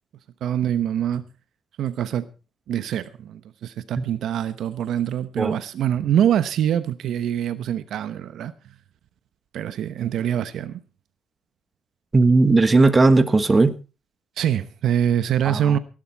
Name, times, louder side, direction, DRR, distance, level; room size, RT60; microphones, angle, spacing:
voice 1, 0.4-1.3 1.8-2.3 2.7-8.8 9.5-10.8 14.4-15.8, right 10 dB, 75° right, 0.9 m, -24 dB
voice 2, 12.1-13.7 15.4-15.8, right 3 dB, 25° right, 1.4 m, -17 dB
16.5 x 11.5 x 4.5 m
cardioid pair, 90°, 0 cm